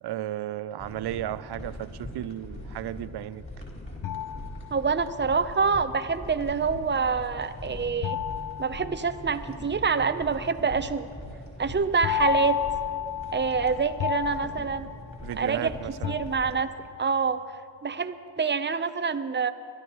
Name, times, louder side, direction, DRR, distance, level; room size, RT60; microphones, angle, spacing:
voice 1, 0.0-3.4 15.2-16.2, right 12 dB, 65° right, 16 dB, 0.6 m, -34 dB
sound 1, 0.8-16.6, left 1 dB, 30° left, 4.6 m, -42 dB
sound 2, 4.0-5.2 8.0-9.7 12.0-15.6 16.0-17.0, left 10 dB, 50° left, 0.4 m, -32 dB
voice 2, 4.7-8.2 8.6-11.1 11.6-12.6 13.3-14.9 15.4-15.7 16.0-16.7 17.0-17.4 17.8-19.5, right 5 dB, 25° right, 11 dB, 0.8 m, -26 dB
sound 3, 6.2-7.7 7.9-8.4 8.7-8.9 10.7-10.9 11.6-11.9, left 3 dB, 80° left, 1.7 m, -46 dB
25.0 x 12.5 x 3.1 m, 2.2 s
supercardioid pair, 50°, 43 cm